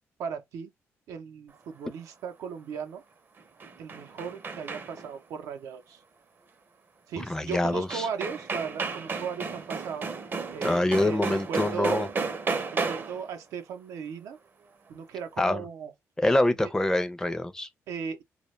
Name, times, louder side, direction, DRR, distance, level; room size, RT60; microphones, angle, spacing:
voice 1, 0.2-0.7 1.1-3.0 3.8-6.0 7.1-10.1 10.5-12.1 12.7-14.4 14.9-15.9 17.9-18.2, right 6 dB, 90° right, 0.5 m, -37 dB
sound 1, 3.4-5.2 7.5-7.6 7.9-13.3, right 4 dB, 40° right, 0.5 m, -33 dB
voice 2, 7.3-8.1 10.6-12.1 15.4-15.6 16.2-17.7, left 1 dB, 10° left, 0.4 m, -25 dB
2.2 x 2.0 x 3.0 m
cardioid pair, 95°, 5 cm